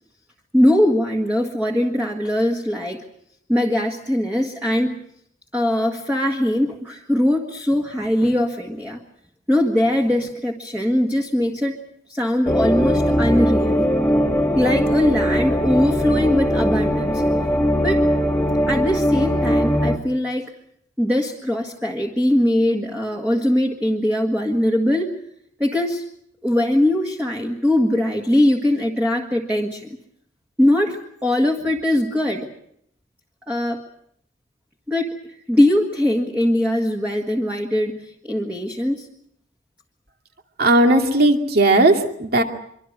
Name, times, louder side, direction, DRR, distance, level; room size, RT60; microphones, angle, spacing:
voice 1, 0.5-3.0 3.5-5.0 5.5-9.0 9.5-11.8 12.1-13.9 14.5-17.2 17.8-18.1 18.7-20.5 21.0-25.2 25.6-26.0 26.4-29.9 30.6-32.5 33.5-33.8 34.9-35.1 35.5-39.1, left 1 dB, 10° right, 0 dB, 1.8 m, -21 dB
sound 1, 12.5-20.0, equal, 10° left, 1.7 m, -20 dB
voice 2, 40.6-42.4, right 2 dB, 55° right, 3 dB, 2.5 m, -16 dB
25.0 x 24.5 x 6.3 m, 0.71 s
head